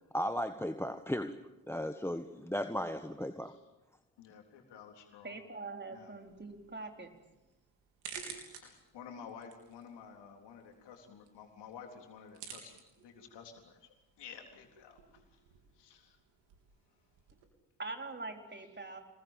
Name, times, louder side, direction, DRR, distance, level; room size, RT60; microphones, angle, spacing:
voice 1, 0.1-1.4 1.7-3.5, equal, 5° left, 10 dB, 1.5 m, -35 dB
voice 2, 4.2-5.4 5.9-6.2 8.6-15.4 15.7-16.2, left 7 dB, 75° left, 3 dB, 3.8 m, -52 dB
voice 3, 5.2-7.1 17.8-19.0, right 3 dB, 25° right, 4 dB, 4.5 m, -43 dB
sound 1, 6.2-17.4, right 7 dB, 85° right, 3.7 m, -53 dB
27.5 x 21.0 x 7.6 m, 1.0 s
hypercardioid pair, 45°, 42 cm